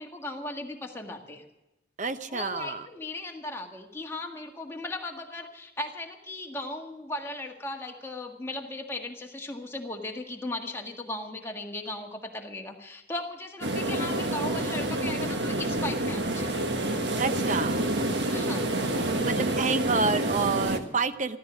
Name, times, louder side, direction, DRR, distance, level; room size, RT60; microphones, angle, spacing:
voice 1, 0.0-1.4 2.3-16.7 18.3-18.7, left 2 dB, 15° left, 1 dB, 1.7 m, -37 dB
voice 2, 2.0-2.9 17.1-17.9 19.0-21.4, right 4 dB, 40° right, 11 dB, 0.8 m, -29 dB
sound 1, 13.6-20.8, right 1 dB, 70° right, 1.5 m, -28 dB
14.5 x 14.5 x 6.2 m, 0.97 s
head